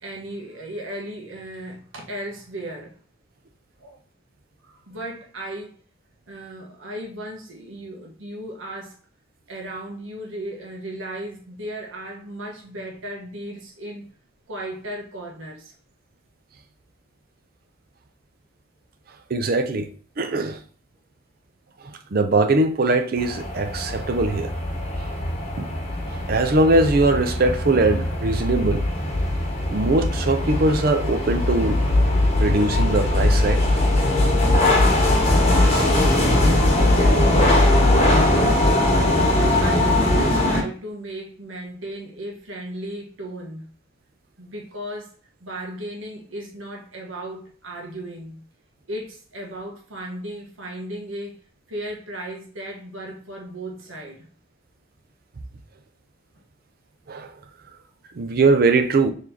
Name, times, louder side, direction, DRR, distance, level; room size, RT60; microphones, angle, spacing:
voice 1, 0.0-2.9 3.8-4.0 4.6-5.7 6.3-8.9 9.5-14.1 14.5-15.7 36.8-39.3 39.6-43.7 44.4-45.1 45.4-48.4 48.9-51.4 51.7-54.3, right 1 dB, 90° right, 1.2 m, -35 dB
voice 2, 19.3-19.9 20.2-20.6 21.8-24.5 25.0-25.1 25.6-25.7 26.1-28.8 29.7-31.8 32.3-33.6 35.7-35.9 57.1-57.3 58.1-59.1, right 2 dB, 50° right, 0.5 m, -21 dB
sound 1, 23.2-40.6, left 1 dB, 35° left, 1.0 m, -20 dB
4.1 x 3.2 x 2.8 m
head